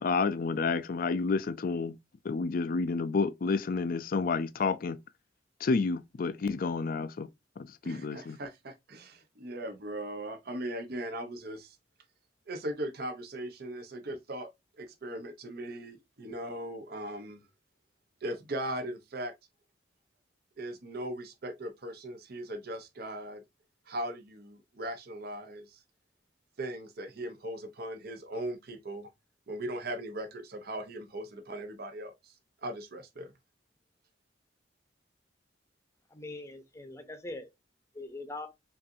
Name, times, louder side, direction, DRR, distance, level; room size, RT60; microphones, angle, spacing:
voice 1, 0.0-2.0 2.2-5.0 5.6-7.3 7.6-8.4, left 4 dB, 50° left, 0.4 m, -30 dB
voice 2, 7.8-11.8 12.5-14.5 14.8-17.5 18.2-19.3 20.6-23.4 23.9-25.8 26.6-29.1 29.5-32.4 32.6-33.3, right 1 dB, 55° right, 0.7 m, -39 dB
voice 3, 36.1-37.5 37.9-38.5, left 2 dB, 15° left, 0.7 m, -42 dB
5.3 x 2.6 x 2.6 m
head